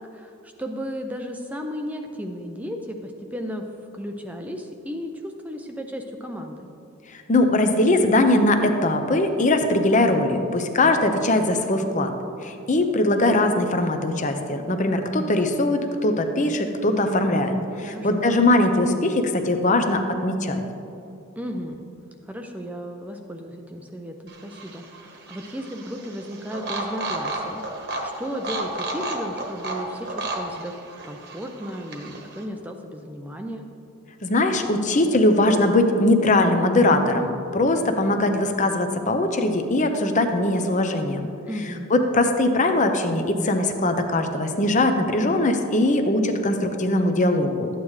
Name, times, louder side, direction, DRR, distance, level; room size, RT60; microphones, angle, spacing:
voice 1, 0.0-3.6 3.9-6.7 17.8-18.3 21.4-21.8 22.3-24.8 25.3-30.7 31.0-33.6 41.5-41.9, equal, 5° right, 3 dB, 0.5 m, -34 dB
voice 2, 7.1-12.1 12.4-20.6 34.2-41.3 41.9-47.7, left 2 dB, 35° left, 6 dB, 0.7 m, -21 dB
sound 1, 24.3-32.4, right 2 dB, 50° right, 1.3 m, -33 dB
13.0 x 9.2 x 3.2 m, 2.7 s
head